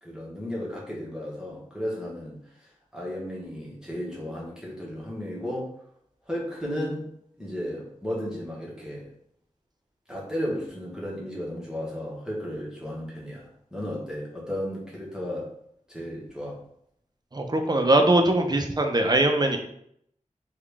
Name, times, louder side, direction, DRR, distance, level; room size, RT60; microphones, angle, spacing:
voice 1, 0.0-5.7 6.3-7.1 7.4-9.1 10.1-15.5 15.9-16.6, equal, 5° right, -5 dB, 1.1 m, -34 dB
voice 2, 17.3-19.6, right 1 dB, 30° right, 4 dB, 0.5 m, -21 dB
3.7 x 2.4 x 3.4 m, 0.71 s
wide cardioid pair, 70°, 13 cm